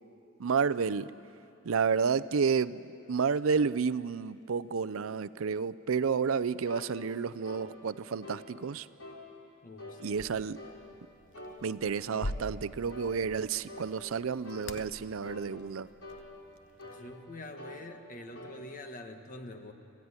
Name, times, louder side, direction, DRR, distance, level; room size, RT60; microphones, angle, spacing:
voice 1, 0.4-1.1 1.6-2.8 3.1-8.9 10.0-10.6 11.6-15.9, right 6 dB, 75° right, 17 dB, 0.5 m, -30 dB
sound 1, 6.7-6.9 7.4-7.7 8.2-8.5 9.0-9.2 9.8-10.0 10.6-10.8 11.3-11.6 12.1-12.3 12.9-13.1 13.7-13.9 14.4-14.7 15.2-15.5 16.0-16.3 16.8-17.1 17.6-17.8 18.3-18.6, left 2 dB, 80° left, 4.0 m, -46 dB
voice 2, 9.6-10.4 16.8-19.7, left 1 dB, 40° left, 6 dB, 1.5 m, -46 dB
sound 2, 10.1-17.2, left 1 dB, 60° left, 0.9 m, -45 dB
26.5 x 15.0 x 9.7 m, 2.9 s
head